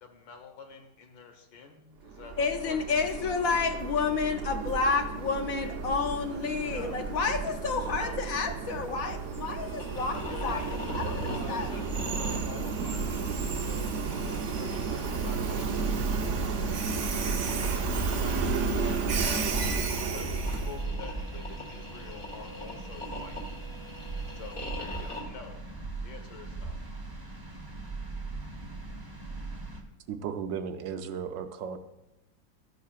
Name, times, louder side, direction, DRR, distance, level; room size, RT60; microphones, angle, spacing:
voice 1, 0.0-3.2 6.6-7.1 8.0-8.3 9.1-9.2 10.1-13.2 13.6-13.9 14.6-15.8 18.7-19.7 19.9-23.4 24.3-25.6 26.0-26.8, left 5 dB, 85° left, 5 dB, 2.0 m, -47 dB
Train, 2.0-20.8, right 5 dB, 55° right, 0.9 m, -32 dB
voice 2, 2.4-10.2 10.4-11.7, left 5 dB, 60° left, 6 dB, 1.0 m, -30 dB
sound 1, 9.7-25.2, left 1 dB, 30° left, 1.8 m, -44 dB
sound 2, 9.9-29.8, right 3 dB, 15° right, 0.7 m, -38 dB
voice 3, 30.1-31.8, right 7 dB, 75° right, 8 dB, 1.4 m, -35 dB
13.5 x 10.5 x 2.4 m, 0.94 s
omnidirectional pair, 2.0 m